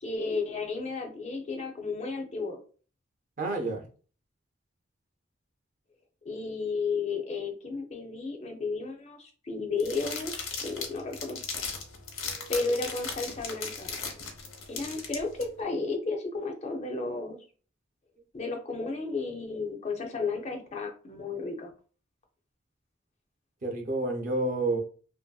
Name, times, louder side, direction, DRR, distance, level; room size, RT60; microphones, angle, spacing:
voice 1, 0.0-2.6 6.2-11.4 12.5-13.9 14.7-17.4 18.3-21.7, left 3 dB, 35° left, 0.4 m, -33 dB
voice 2, 3.4-3.8 12.3-12.5 23.6-24.8, right 2 dB, 40° right, 0.5 m, -29 dB
sound 1, 9.8-15.4, left 5 dB, 80° left, 0.7 m, -37 dB
2.9 x 2.5 x 2.2 m
head